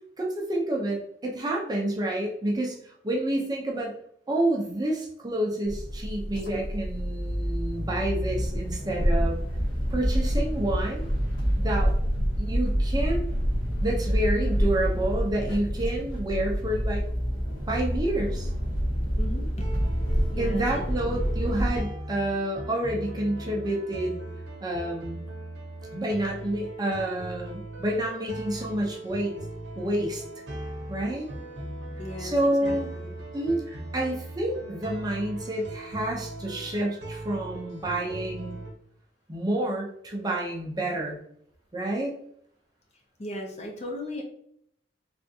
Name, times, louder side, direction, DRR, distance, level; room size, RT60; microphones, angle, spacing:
voice 1, 0.2-2.8 3.0-3.9 4.3-9.4 9.9-11.1 11.5-11.9 12.4-13.3 13.8-17.1 17.7-18.5 20.4-24.2 24.6-25.2 25.9-29.4 29.8-30.2 30.9-31.3 32.2-32.9 33.3-38.6 39.3-41.2 41.7-42.1, right 1 dB, 20° right, -1 dB, 0.6 m, -29 dB
sound 1, 5.7-21.8, equal, 75° left, 1.1 m, -27 dB
voice 2, 19.2-19.7 20.3-21.4 32.0-33.2 43.2-44.2, left 1 dB, 35° left, 1 dB, 0.6 m, -38 dB
sound 2, 19.6-38.7, right 1 dB, 70° right, 0.8 m, -39 dB
3.4 x 2.4 x 2.7 m, 0.68 s
head